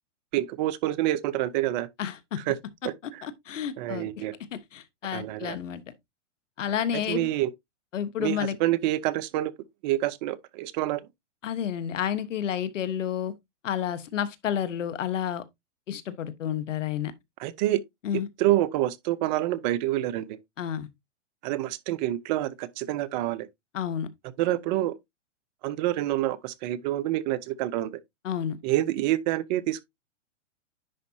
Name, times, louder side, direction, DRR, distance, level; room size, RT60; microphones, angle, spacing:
voice 1, 0.3-1.9 2.4-2.6 2.8-3.2 3.8-4.4 5.1-5.6 6.9-7.5 8.2-9.5 9.8-11.0 17.4-17.8 18.1-20.4 21.4-23.5 24.4-25.0 25.6-28.0 28.6-29.8, right 14 dB, 35° right, 0.8 m, -27 dB
voice 2, 2.0-2.4 3.2-4.2 4.5-5.8 6.6-7.3 7.9-8.6 11.4-13.3 13.6-15.4 15.9-17.1 18.0-18.3 20.6-20.9 23.7-24.1 28.2-28.6, left 9 dB, 80° left, 1.3 m, -30 dB
10.5 x 4.1 x 2.7 m
hypercardioid pair, 130°, 37 cm